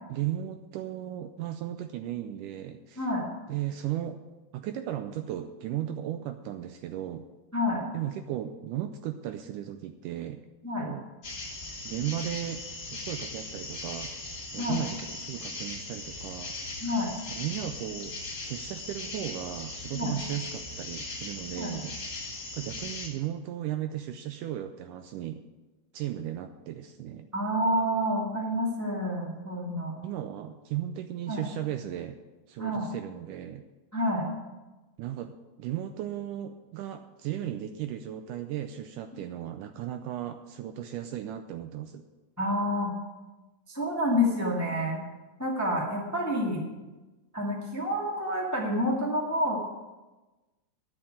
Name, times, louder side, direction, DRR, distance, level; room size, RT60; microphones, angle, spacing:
voice 1, 0.1-3.1 3.5-4.2 4.5-7.3 7.9-10.4 10.8-11.1 11.9-14.1 14.5-16.6 17.3-25.4 25.9-27.3 30.0-32.2 32.5-33.7 35.0-42.0, right 11 dB, 80° right, 8 dB, 1.9 m, -36 dB
voice 2, 3.0-3.3 7.5-7.9 10.6-10.9 14.6-14.8 16.8-17.1 19.9-20.1 21.5-21.7 27.3-29.9 31.3-31.4 32.6-32.9 33.9-34.3 42.4-42.9 43.7-45.0 45.4-46.6 47.3-49.6, left 1 dB, 10° left, -2 dB, 1.1 m, -28 dB
sound 1, 11.2-23.1, left 2 dB, 30° left, 2.9 m, -39 dB
11.0 x 7.1 x 8.8 m, 1.2 s
omnidirectional pair, 4.1 m